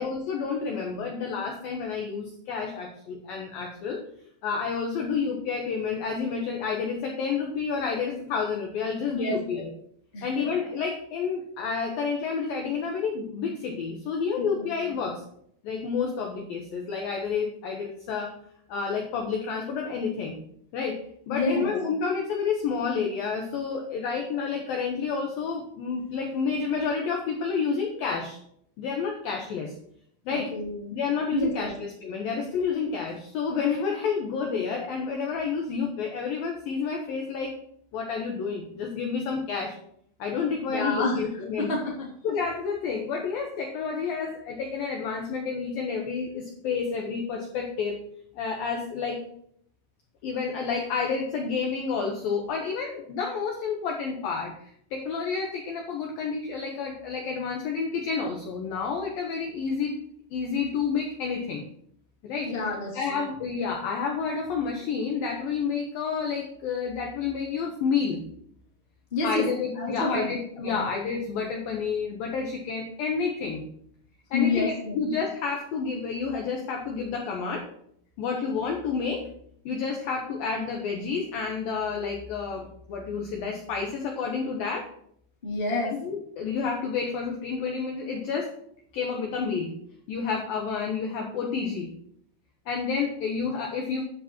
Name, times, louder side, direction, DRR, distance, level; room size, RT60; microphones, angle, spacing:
voice 1, 0.0-4.0 4.4-9.7 10.2-15.2 15.6-18.3 18.7-20.4 20.7-21.0 21.3-28.4 28.8-29.7 30.3-30.5 30.9-37.5 37.9-39.8 40.2-41.7 42.2-48.0 48.4-49.2 50.2-60.0 60.3-61.6 62.2-62.5 62.9-68.2 69.2-73.7 74.3-77.7 78.2-79.3 79.7-84.9 86.0-88.5 88.9-89.8 90.1-91.9 92.7-94.0, left 5 dB, 75° left, 1 dB, 2.1 m, -30 dB
voice 2, 9.1-9.6 10.1-10.5 14.4-14.7 21.3-21.7 30.3-30.9 31.3-31.7 40.7-41.2 41.6-41.9 62.4-63.0 69.1-69.4 69.8-70.3 70.6-70.8 74.3-75.0 85.4-85.9, left 3 dB, 20° left, -3 dB, 1.8 m, -28 dB
13.0 x 10.0 x 3.1 m, 0.68 s
omnidirectional pair, 5.8 m